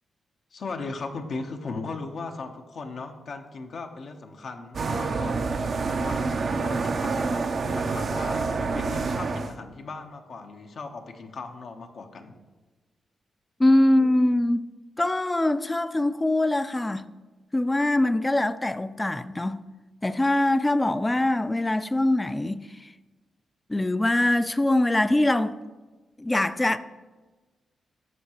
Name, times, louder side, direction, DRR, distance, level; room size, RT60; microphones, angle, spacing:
voice 1, 0.5-12.4, left 3 dB, 65° left, 0.8 m, -38 dB
sound 1, 4.7-9.5, right 4 dB, 60° right, 0.5 m, -27 dB
voice 2, 13.6-14.6 15.0-17.1 17.5-19.6 20.0-22.9 23.7-25.6 26.2-26.8, left 1 dB, 20° left, 0.4 m, -23 dB
12.5 x 4.6 x 2.9 m
supercardioid pair, 45°, 0 cm